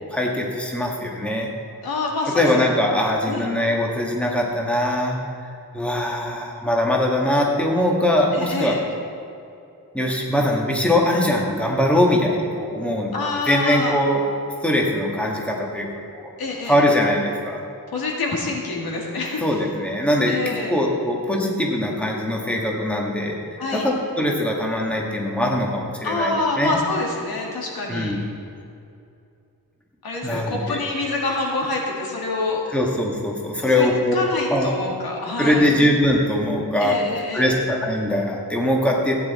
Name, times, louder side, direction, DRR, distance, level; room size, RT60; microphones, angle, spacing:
voice 1, 0.1-1.5 2.3-5.2 5.7-8.7 9.9-13.1 13.5-14.2 14.6-16.3 16.6-17.6 19.4-23.4 23.7-23.8 24.2-26.8 27.9-28.2 30.2-30.8 32.7-34.2 34.5-34.7 35.4-37.0 37.3-39.1, left 1 dB, 5° left, -1 dB, 1.6 m, -21 dB
voice 2, 1.8-2.6 3.3-3.5 8.3-8.8 13.1-14.0 16.4-16.8 17.9-19.4 20.3-20.7 23.6-23.9 26.0-28.1 30.0-32.6 33.8-35.7 36.8-37.5, left 3 dB, 80° left, -1 dB, 2.3 m, -26 dB
15.5 x 9.5 x 4.2 m, 2.6 s
wide cardioid pair, 135°, 36 cm